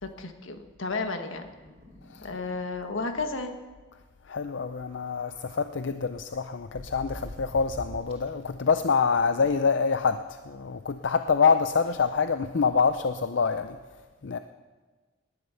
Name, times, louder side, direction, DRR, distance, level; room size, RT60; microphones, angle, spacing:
voice 1, 0.0-1.5 2.2-3.5, left 3 dB, 80° left, 6 dB, 1.4 m, -32 dB
sound 1, 1.5-2.5 2.8-2.9 3.2-3.4 4.6-5.6 6.1-8.4, equal, 30° right, 3.3 m, -45 dB
voice 2, 4.3-13.8 14.2-14.4, left 5 dB, 65° left, 10 dB, 0.5 m, -26 dB
19.0 x 11.0 x 5.7 m, 1.4 s
head